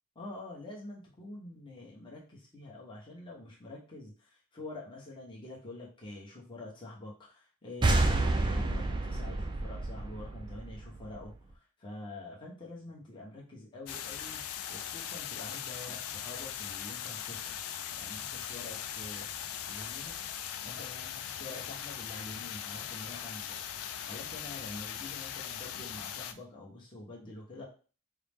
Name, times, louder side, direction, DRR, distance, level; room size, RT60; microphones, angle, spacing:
voice 1, 0.1-17.5 18.0-19.3 19.7-23.6 24.0-27.6, left 2 dB, 20° left, -4 dB, 1.0 m, -46 dB
sound 1, 7.8-11.3, right 2 dB, 20° right, 0.3 m, -29 dB
sound 2, 13.9-26.3, left 9 dB, 85° left, 0.4 m, -40 dB
4.5 x 2.1 x 3.5 m, 0.36 s
head